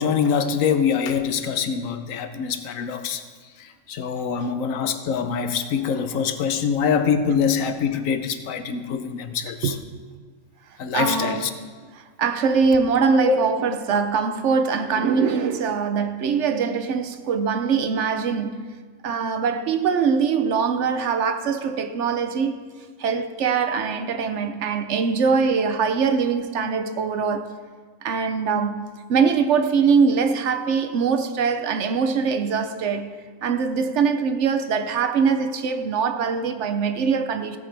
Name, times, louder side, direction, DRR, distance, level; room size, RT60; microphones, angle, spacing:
voice 1, 0.0-3.2 3.9-9.7 10.8-11.5 13.3-13.4, left 7 dB, 85° left, 1.2 m, -24 dB
voice 2, 10.9-11.5 12.2-18.7 19.0-22.6 23.0-27.6 28.0-33.2 33.4-37.6, right 5 dB, 65° right, 1.0 m, -22 dB
16.0 x 8.9 x 3.4 m
omnidirectional pair, 1.3 m